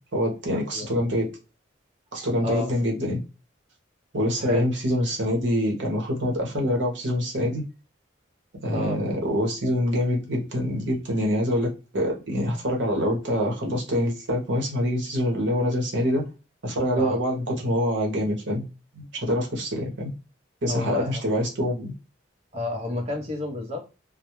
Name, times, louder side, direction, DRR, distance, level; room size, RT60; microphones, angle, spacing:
voice 1, 0.1-1.3 2.1-3.2 4.1-7.6 8.6-16.2 16.6-18.7 18.9-20.1 20.6-21.9, equal, 65° right, 0.8 m, -25 dB
voice 2, 20.7-21.2 22.5-23.8, left 2 dB, 30° right, 0.7 m, -30 dB
2.2 x 2.0 x 2.9 m
head